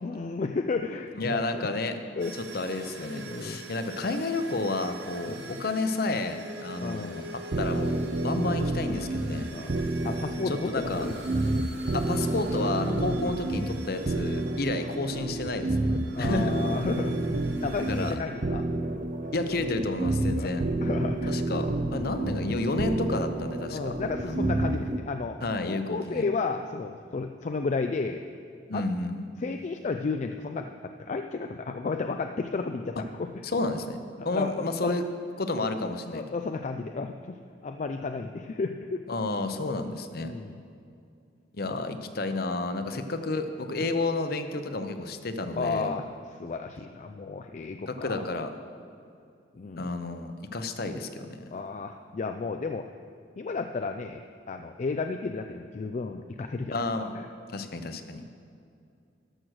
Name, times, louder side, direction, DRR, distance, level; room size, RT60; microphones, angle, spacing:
voice 1, 0.0-1.4 2.2-2.4 3.3-3.6 5.3-5.5 6.8-7.4 9.5-11.1 16.2-17.4 17.6-18.6 20.4-21.6 23.7-25.4 25.7-28.2 28.7-28.8 29.4-33.4 34.2-34.5 34.8-34.9 36.1-39.0 40.2-40.6 41.6-41.8 42.9-43.0 45.6-46.1 46.4-48.2 49.6-49.9 51.5-52.9 53.4-54.2 54.5-56.8 57.1-57.3 58.2-58.3, left 4 dB, 40° left, 6 dB, 0.4 m, -33 dB
voice 2, 1.2-2.0 2.3-7.9 8.2-9.5 10.5-11.1 11.9-15.9 16.2-16.5 17.8-18.2 19.3-20.6 21.3-24.0 24.2-24.6 25.4-26.3 28.7-29.2 33.4-35.0 35.4-36.2 39.1-40.3 41.5-45.9 47.9-48.5 49.8-51.4 56.7-57.1 57.5-58.2, left 2 dB, 55° left, 8 dB, 0.7 m, -31 dB
sound 1, 2.2-18.2, right 2 dB, 65° right, 1.0 m, -45 dB
sound 2, 7.5-25.0, right 2 dB, 45° right, 0.5 m, -29 dB
13.0 x 6.2 x 6.3 m, 2.4 s
head